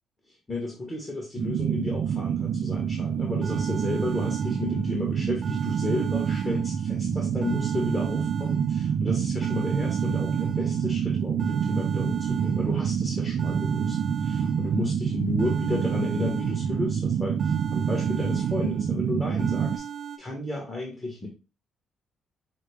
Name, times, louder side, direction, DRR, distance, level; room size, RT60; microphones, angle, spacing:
voice 1, 0.3-19.8 20.2-21.3, left 2 dB, 25° left, 0 dB, 1.2 m, -33 dB
sound 1, 1.4-19.8, right 7 dB, 65° right, 0.4 m, -27 dB
sound 2, 3.0-3.1 3.4-5.0 5.4-7.0 7.4-9.0 9.4-11.0 11.4-13.0 13.4-15.0 15.4-17.0 17.4-19.0 19.4-20.2, right 8 dB, 40° right, 0.7 m, -39 dB
5.7 x 2.1 x 3.4 m, 0.31 s
cardioid pair, 90°, 0 cm